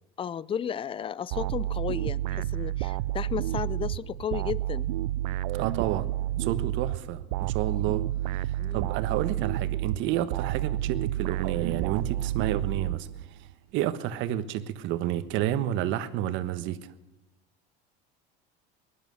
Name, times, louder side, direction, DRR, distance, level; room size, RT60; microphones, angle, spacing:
voice 1, 0.2-4.9 8.6-9.0, left 8 dB, 25° left, 0.5 m, -34 dB
sound 1, 1.3-13.5, right 14 dB, 90° right, 0.4 m, -30 dB
voice 2, 5.5-6.1 6.4-8.0 8.4-13.4 13.7-16.9, right 12 dB, 65° right, 1.3 m, -30 dB
19.0 x 12.0 x 6.3 m
supercardioid pair, 105°, 21 cm